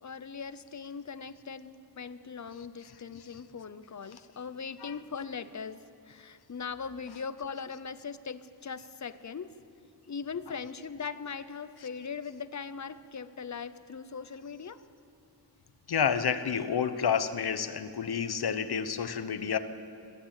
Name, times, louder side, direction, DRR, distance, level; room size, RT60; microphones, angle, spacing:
voice 1, 0.0-9.5 10.1-14.8, left 5 dB, 40° left, 13 dB, 0.7 m, -40 dB
voice 2, 15.9-19.6, left 7 dB, 60° left, 11 dB, 1.1 m, -29 dB
22.0 x 14.0 x 9.0 m, 2.5 s
wide cardioid pair, 150°, 42 cm